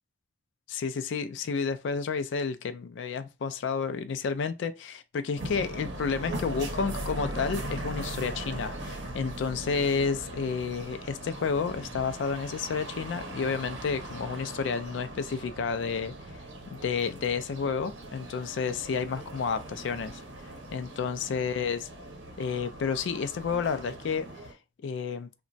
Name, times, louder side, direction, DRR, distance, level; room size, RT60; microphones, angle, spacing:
voice 1, 0.7-16.1 16.7-20.2 20.7-21.9 22.4-24.3 24.8-25.3, left 5 dB, 65° left, 0.3 m, -31 dB
sound 1, 5.4-24.5, right 1 dB, 65° right, 0.8 m, -39 dB
2.9 x 2.2 x 2.5 m
head